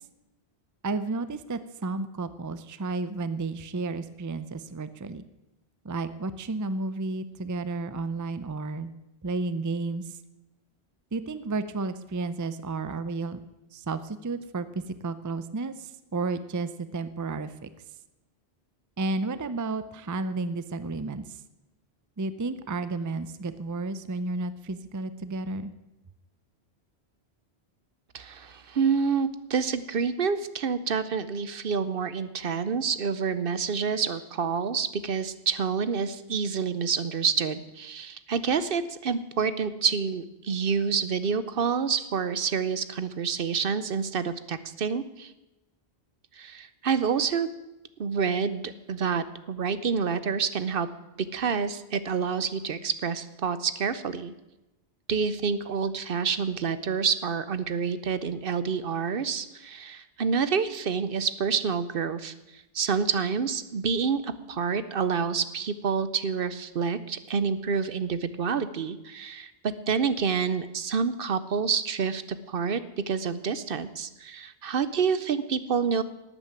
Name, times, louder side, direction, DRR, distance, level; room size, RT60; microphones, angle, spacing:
voice 1, 0.8-5.2 5.8-8.9 9.2-10.2 11.1-13.4 13.7-17.7 19.0-21.4 22.2-25.7, right 3 dB, 25° right, 13 dB, 0.5 m, -32 dB
voice 2, 28.1-45.3 46.4-47.5 48.0-50.9 51.2-54.3 55.1-76.0, right 6 dB, 60° right, 14 dB, 0.9 m, -28 dB
12.5 x 9.0 x 9.0 m, 0.99 s
omnidirectional pair, 1.1 m